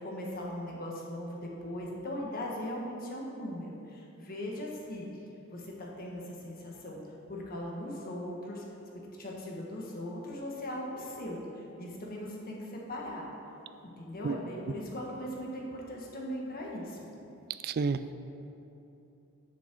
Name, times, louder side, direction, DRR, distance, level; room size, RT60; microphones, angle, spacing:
voice 1, 0.0-5.1 5.5-7.0 7.3-8.6 9.2-13.2 13.8-17.0, left 1 dB, 45° left, -2 dB, 1.4 m, -39 dB
voice 2, 17.6-18.1, right 4 dB, 50° right, 12 dB, 0.4 m, -30 dB
7.3 x 7.3 x 6.1 m, 2.9 s
head